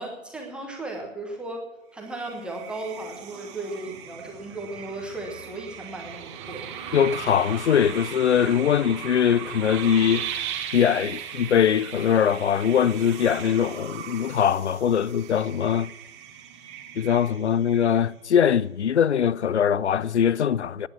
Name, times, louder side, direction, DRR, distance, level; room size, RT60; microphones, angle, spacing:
voice 1, 0.0-1.7 1.9-6.7, right 2 dB, ahead, 1.2 m, -36 dB
sound 1, 2.1-18.3, right 9 dB, 20° right, 1.4 m, -38 dB
voice 2, 6.9-10.3 10.7-15.9 17.0-20.9, left 8 dB, 55° left, 0.6 m, -22 dB
18.5 x 9.8 x 5.8 m
figure-of-eight pair, 140°, 41 cm